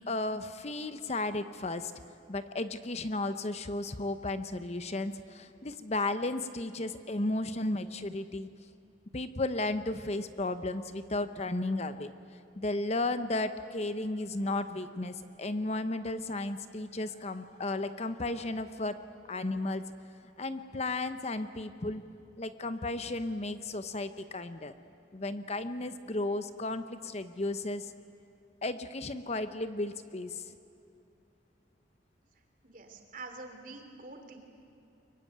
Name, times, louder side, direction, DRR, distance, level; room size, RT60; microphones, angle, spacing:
voice 1, 0.1-1.9 2.3-8.5 9.1-12.1 12.6-19.0 19.3-19.8 20.4-22.0 22.4-24.7 25.1-27.9 28.6-30.5, left 2 dB, 35° left, 11 dB, 0.8 m, -34 dB
voice 2, 32.6-34.5, right 3 dB, 45° right, 4 dB, 3.3 m, -46 dB
24.5 x 22.5 x 9.3 m, 2.7 s
head